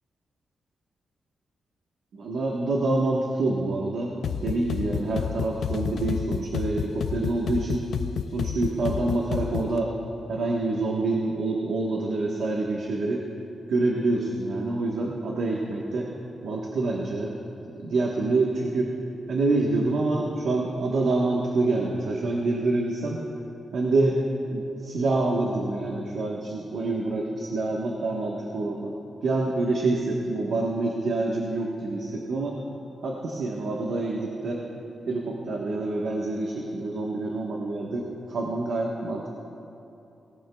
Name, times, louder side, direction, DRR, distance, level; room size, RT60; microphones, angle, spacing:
voice 1, 2.1-4.1 4.4-7.9 8.3-9.9 10.3-13.2 13.7-16.1 16.4-17.3 17.8-18.9 19.3-23.2 23.7-29.0 29.2-32.6 33.0-34.6 35.1-39.3, right 2 dB, 70° right, -2 dB, 1.2 m, -26 dB
sound 1, 4.2-9.8, left 7 dB, 70° left, 0.4 m, -30 dB
18.0 x 18.0 x 2.3 m, 2.9 s
wide cardioid pair, 145°, 0 cm